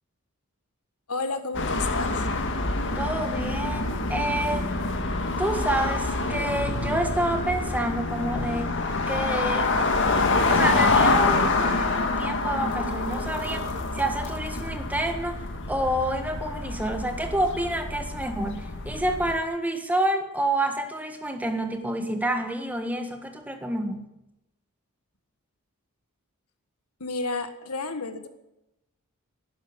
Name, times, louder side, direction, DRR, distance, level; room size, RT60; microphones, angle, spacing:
voice 1, 1.1-2.3 27.0-28.3, left 3 dB, 85° left, 9 dB, 1.6 m, -31 dB
sound 1, 1.5-19.4, left 3 dB, 55° left, 1.9 m, -26 dB
voice 2, 2.9-4.7 5.4-8.7 9.1-9.7 10.5-24.1, right 1 dB, 5° right, 6 dB, 1.6 m, -28 dB
12.0 x 11.5 x 9.8 m, 0.91 s
head